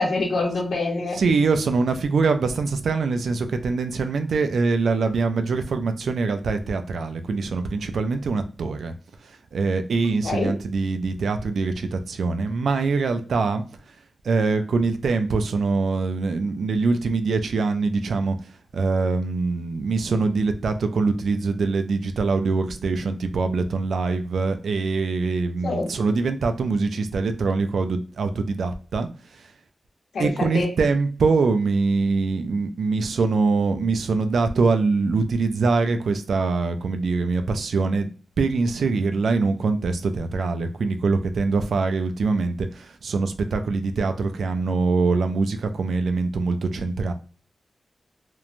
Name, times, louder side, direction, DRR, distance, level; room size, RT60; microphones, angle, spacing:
voice 1, 0.0-1.2 10.2-10.5 25.6-25.9 30.1-30.7, left 3 dB, 80° left, 0 dB, 0.8 m, -25 dB
voice 2, 1.1-8.9 9.2-13.6 14.2-18.4 18.7-29.5 30.2-38.1 38.4-47.1, right 4 dB, 85° right, 7 dB, 0.3 m, -23 dB
3.0 x 2.1 x 2.4 m, 0.37 s
wide cardioid pair, 140°, 0 cm